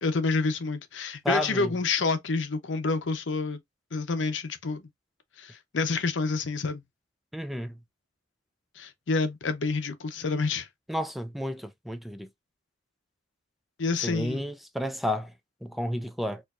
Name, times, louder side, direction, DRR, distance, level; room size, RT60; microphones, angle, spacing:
voice 1, 0.0-3.6 3.9-4.9 5.4-6.8 8.8-10.7 13.8-14.4, left 4 dB, 90° left, 0.7 m, -28 dB
voice 2, 1.2-1.7 7.3-7.7 10.9-12.3 14.0-15.3 15.6-16.4, equal, ahead, 0.3 m, -31 dB
4.4 x 2.6 x 2.4 m
head